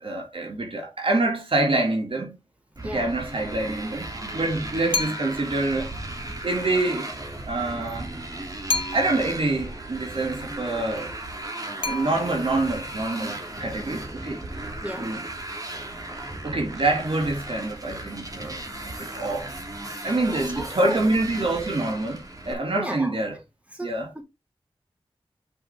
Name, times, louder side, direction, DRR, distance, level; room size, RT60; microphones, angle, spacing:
voice 1, 0.0-2.4 2.9-5.9 6.3-7.1 7.4-8.1 8.9-11.1 11.9-14.7 15.0-15.2 16.4-19.5 20.0-23.4 23.8-24.1, right 2 dB, 60° right, 2.3 m, -26 dB
voice 2, 2.8-3.1 14.8-15.1 20.0-21.0 22.7-23.1 23.7-24.2, right 1 dB, 15° right, 3.3 m, -35 dB
Motorcycle, 2.8-22.5, right 1 dB, 35° right, 2.8 m, -36 dB
sound 1, 4.9-5.5 8.7-9.4 11.8-12.6, left 3 dB, 55° left, 1.2 m, -30 dB
7.0 x 6.1 x 3.5 m
wide cardioid pair, 55°, 10 cm